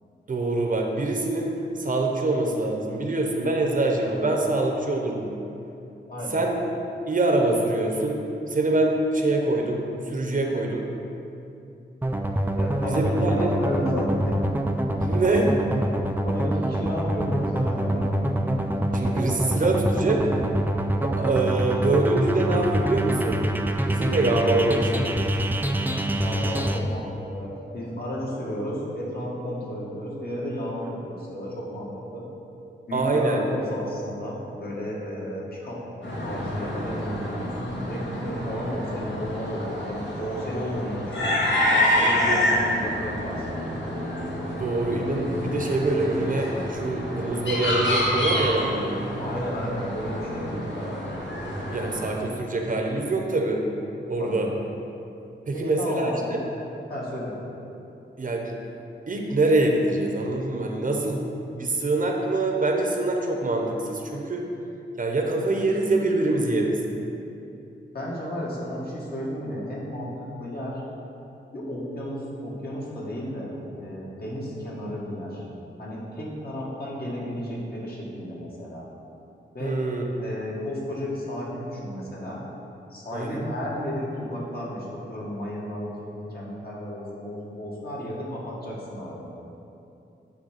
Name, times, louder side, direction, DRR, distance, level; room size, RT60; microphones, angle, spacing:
voice 1, 0.3-1.5 1.8-5.3 6.3-6.5 7.1-8.2 8.5-10.9 12.9-13.5 15.0-15.5 18.9-20.2 20.9-23.5 23.8-25.3 32.9-33.5 42.3-42.4 44.6-49.0 51.7-53.7 54.1-54.5 55.5-56.4 58.2-58.5 59.1-61.3 61.5-64.4 65.0-66.8 79.6-80.0 83.1-83.5, right 2 dB, 45° right, 1 dB, 0.8 m, -24 dB
voice 2, 6.1-6.4 12.5-14.5 16.0-18.1 26.2-32.2 32.9-35.8 36.2-37.3 37.9-41.3 41.7-43.6 49.2-51.0 54.2-54.4 55.5-56.4 56.9-57.3 67.9-70.8 71.5-75.5 75.8-78.8 79.5-79.8 80.2-82.4 82.9-89.3, equal, 55° left, -5 dB, 1.8 m, -33 dB
sound 1, 12.0-26.8, right 1 dB, 10° right, 0.4 m, -25 dB
sound 2, 36.0-52.1, left 1 dB, 80° left, 1.9 m, -28 dB
9.4 x 3.4 x 6.5 m, 2.8 s
wide cardioid pair, 130°, 19 cm